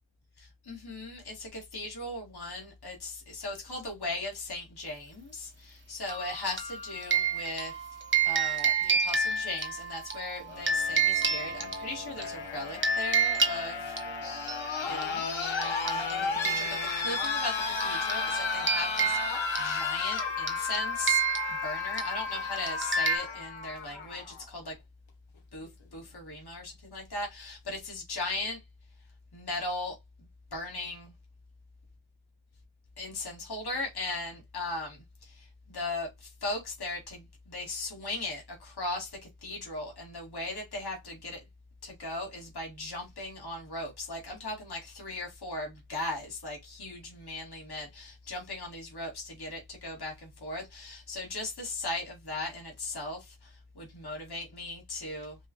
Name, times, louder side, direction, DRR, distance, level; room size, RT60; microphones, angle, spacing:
voice 1, 0.4-7.8 8.2-14.0 14.8-16.7 16.9-21.2 21.5-24.8 25.5-28.6 29.3-31.1 33.0-41.4 41.8-55.4, left 2 dB, 55° left, 2.1 m, -38 dB
sound 1, 6.1-12.3 12.8-14.6 15.0-15.1 15.4-23.2, right 5 dB, 25° right, 1.0 m, -30 dB
sound 2, 10.4-24.4 25.7-25.8, left 5 dB, 70° left, 1.4 m, -34 dB
5.3 x 2.4 x 3.0 m
wide cardioid pair, 95°, 47 cm